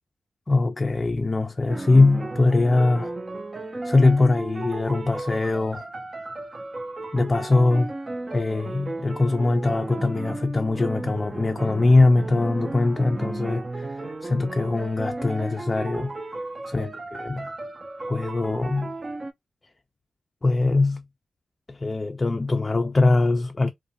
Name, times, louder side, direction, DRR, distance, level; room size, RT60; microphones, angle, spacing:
voice 1, 0.5-3.1 3.8-5.8 7.1-7.9 8.3-16.1 16.7-17.5 18.1-18.9 20.4-21.0 21.7-23.7, left 3 dB, 35° left, 0.3 m, -22 dB
sound 1, 1.7-19.3, right 2 dB, 40° right, 0.4 m, -34 dB
2.5 x 2.1 x 2.6 m
cardioid pair, 45°, 0 cm